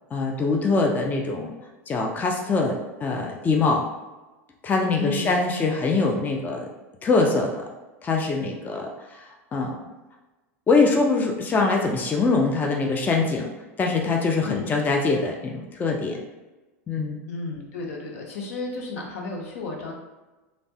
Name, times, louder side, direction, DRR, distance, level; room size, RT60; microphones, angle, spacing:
voice 1, 0.1-1.5 1.9-3.8 4.6-6.7 7.0-7.6 8.0-9.2 9.5-9.8 10.7-13.5 13.8-16.2 16.9-17.2, left 3 dB, 20° left, 1 dB, 0.4 m, -23 dB
voice 2, 5.0-5.4 14.4-14.8 17.2-19.9, left 3 dB, 75° left, 0 dB, 0.7 m, -33 dB
3.1 x 2.0 x 2.7 m, 1.1 s
hypercardioid pair, 95°, 8 cm